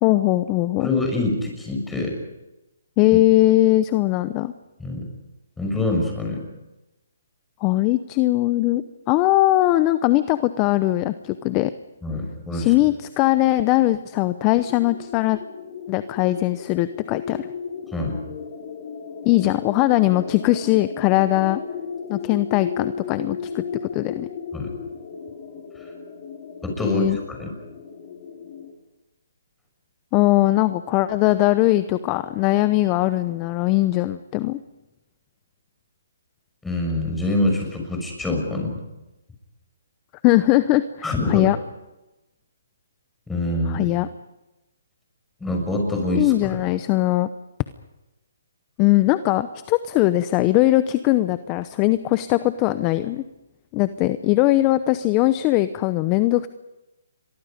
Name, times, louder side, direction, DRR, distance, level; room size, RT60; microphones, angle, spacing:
voice 1, 0.0-0.9 3.0-4.5 7.6-11.7 12.5-15.4 15.9-17.5 19.2-21.6 22.1-23.6 23.9-24.3 26.8-27.2 30.1-34.6 40.2-41.6 43.7-44.1 46.1-47.3 48.8-53.2 53.7-56.5, left 17 dB, 25° left, 13 dB, 0.7 m, -20 dB
voice 2, 0.8-2.1 4.8-5.0 5.6-6.4 12.0-12.7 17.9-18.2 24.5-24.7 25.8-25.9 26.6-27.5 36.6-38.8 41.0-41.5 43.3-43.9 45.4-46.6, left 2 dB, 5° left, 1 dB, 6.2 m, -25 dB
sound 1, 14.6-28.7, left 6 dB, 40° left, 4.7 m, -35 dB
29.0 x 23.5 x 5.2 m, 1.0 s
hypercardioid pair, 150°, 0 cm